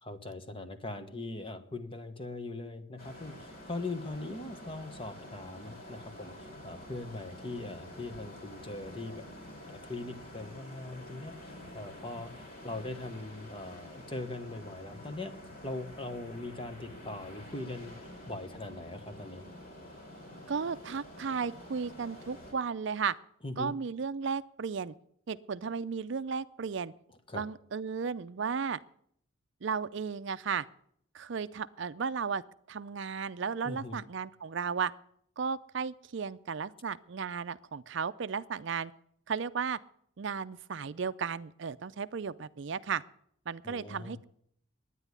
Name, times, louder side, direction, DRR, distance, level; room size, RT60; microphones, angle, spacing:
voice 1, 0.0-9.2 9.7-15.3 15.6-17.9 18.3-19.4 23.4-23.7 27.3-27.4 33.6-34.0 43.6-44.2, left 2 dB, 25° left, 9 dB, 1.2 m, -41 dB
sound 1, 3.0-22.5, left 1 dB, 45° left, 4.3 m, -48 dB
voice 2, 20.5-23.1 23.6-24.9 25.3-26.9 27.3-28.8 29.6-30.7 31.1-32.4 32.7-34.9 35.4-38.9 39.3-39.8 40.2-43.0 43.5-44.2, right 6 dB, 60° right, 14 dB, 0.5 m, -34 dB
10.0 x 9.8 x 9.6 m, 0.67 s
head